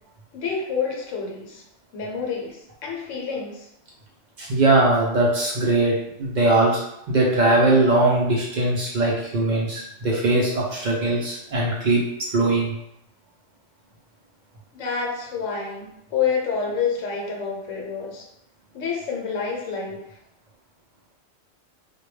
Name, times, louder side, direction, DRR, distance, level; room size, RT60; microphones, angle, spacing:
voice 1, 0.3-1.6 1.9-3.7 14.7-18.3 18.7-20.0, left 6 dB, 80° left, -1 dB, 1.0 m, -28 dB
voice 2, 4.4-6.8 7.1-12.0 12.3-12.7, right 2 dB, 60° right, -3 dB, 0.4 m, -20 dB
2.2 x 2.2 x 3.1 m, 0.82 s
omnidirectional pair, 1.3 m